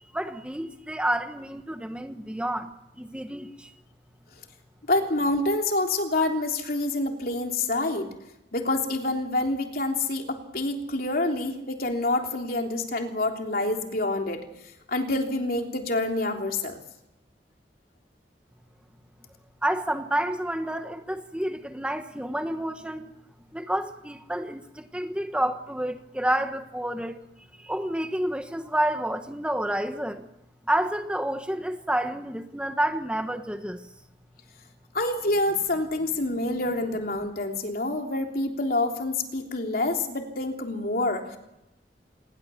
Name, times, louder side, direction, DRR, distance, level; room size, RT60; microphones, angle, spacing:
voice 1, 0.1-3.7 19.6-23.1 23.5-27.2 27.6-30.3 30.7-33.8, right 1 dB, 5° right, 7 dB, 1.2 m, -29 dB
voice 2, 4.9-8.1 8.5-14.4 14.9-16.8 34.9-41.4, left 2 dB, 55° left, 3 dB, 3.3 m, -27 dB
27.0 x 20.5 x 7.1 m, 0.90 s
head